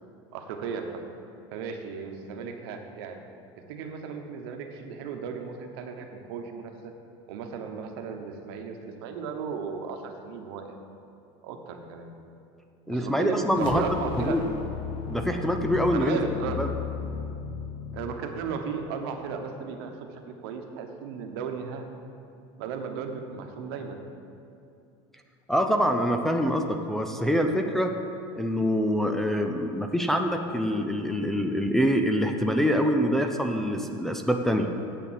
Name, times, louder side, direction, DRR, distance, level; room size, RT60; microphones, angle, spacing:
voice 1, 0.3-1.0 1.5-3.2 3.7-6.9 7.3-10.8 11.4-12.1 12.9-14.4 15.9-16.7 17.9-21.9 22.6-24.0, right 6 dB, 80° right, 5 dB, 1.1 m, -35 dB
voice 2, 12.9-13.8 14.2-14.4 15.1-16.2 16.6-16.7 25.5-27.9 28.4-34.7, equal, 5° left, 3 dB, 0.4 m, -25 dB
sound 1, 13.5-18.9, left 6 dB, 40° left, 0.8 m, -35 dB
8.3 x 7.0 x 7.5 m, 2.6 s
cardioid pair, 170°, 13 cm